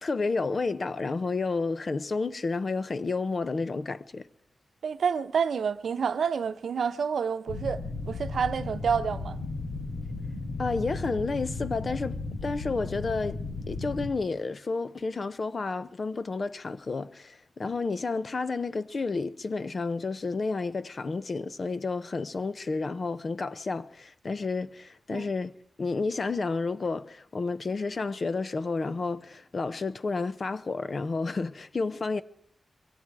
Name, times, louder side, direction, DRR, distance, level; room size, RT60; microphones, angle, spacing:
voice 1, 0.0-4.3 10.6-25.5 25.8-32.2, left 3 dB, 40° left, 0.8 m, -31 dB
voice 2, 4.8-9.4 25.1-25.3, right 6 dB, 80° right, 0.9 m, -28 dB
sound 1, 7.5-14.1, left 3 dB, 80° left, 3.5 m, -35 dB
24.5 x 22.5 x 4.8 m
wide cardioid pair, 145°, 0 cm